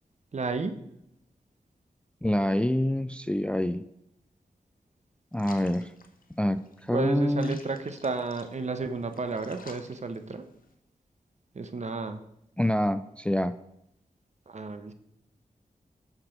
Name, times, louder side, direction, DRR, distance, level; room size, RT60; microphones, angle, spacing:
voice 1, 0.3-0.7 6.9-10.4 11.5-12.2 14.5-14.9, right 4 dB, 50° right, 8 dB, 0.8 m, -32 dB
voice 2, 2.2-3.8 5.3-5.9 6.4-7.6 12.6-13.5, left 1 dB, 5° left, 13 dB, 0.3 m, -26 dB
sound 1, 5.3-10.7, left 3 dB, 70° left, 0.9 m, -52 dB
6.4 x 5.9 x 4.4 m, 0.79 s
cardioid pair, 55°, 15 cm